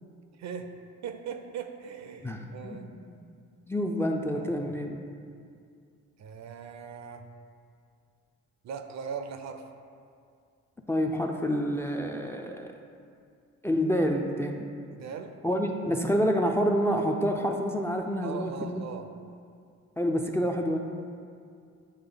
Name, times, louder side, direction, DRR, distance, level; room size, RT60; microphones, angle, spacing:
voice 1, 0.4-0.7 1.0-2.9 4.3-4.7 6.2-7.2 8.6-9.6 14.9-15.3 18.2-19.1, right 6 dB, 65° right, 7 dB, 0.6 m, -39 dB
voice 2, 2.2-3.2 3.7-5.0 10.9-12.7 13.6-14.7 15.4-18.8 20.0-20.8, equal, 10° left, 2 dB, 0.4 m, -28 dB
8.7 x 3.2 x 3.8 m, 2.3 s
cardioid pair, 90°, 30 cm